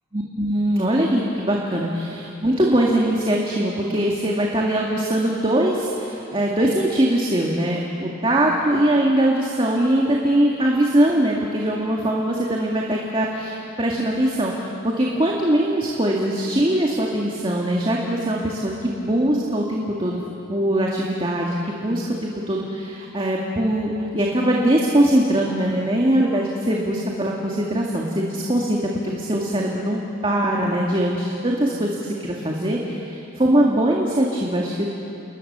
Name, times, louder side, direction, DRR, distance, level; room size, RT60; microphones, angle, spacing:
voice 1, 0.1-20.2 20.5-34.9, right 1 dB, 25° right, -2 dB, 2.1 m, -21 dB
29.5 x 21.0 x 6.8 m, 2.8 s
head